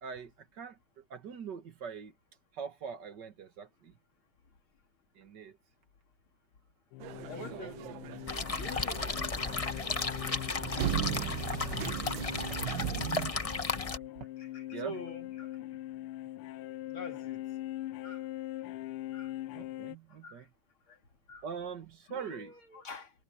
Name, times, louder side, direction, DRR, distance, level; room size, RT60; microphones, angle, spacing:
voice 1, 0.0-2.1 2.5-3.9 5.2-5.6 7.4-7.7 11.0-11.2 11.6-11.8 14.2-14.3 14.7-15.0 19.5-20.5 21.4-22.5, right 6 dB, 55° right, 2.3 m, -43 dB
sound 1, 6.9-19.9, left 16 dB, 85° left, 1.5 m, -42 dB
sound 2, 7.0-13.3, right 12 dB, 70° right, 1.4 m, -38 dB
voice 2, 7.3-7.9 8.6-9.0 14.4-15.5 16.9-17.4 18.0-18.2 19.1-19.3 20.2-20.4 21.3-21.4 22.1-23.2, left 2 dB, 70° left, 3.4 m, -45 dB
sound 3, 8.3-14.0, left 3 dB, 40° left, 0.5 m, -34 dB
omnidirectional pair, 2.4 m